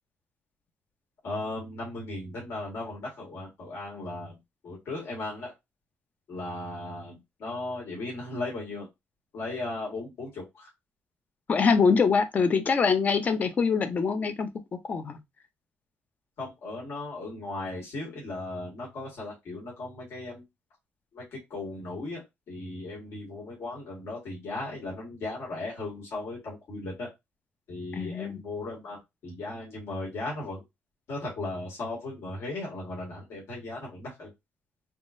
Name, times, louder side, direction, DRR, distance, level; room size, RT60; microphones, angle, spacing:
voice 1, 1.2-4.4 4.6-5.5 6.3-8.9 9.3-10.7 16.4-20.4 21.1-27.1 27.7-30.6 31.1-34.3, left 2 dB, 65° left, 1.7 m, -37 dB
voice 2, 11.5-15.2 28.0-28.4, left 5 dB, 35° left, 0.6 m, -24 dB
3.7 x 3.1 x 2.5 m
cardioid pair, 140°, 5 cm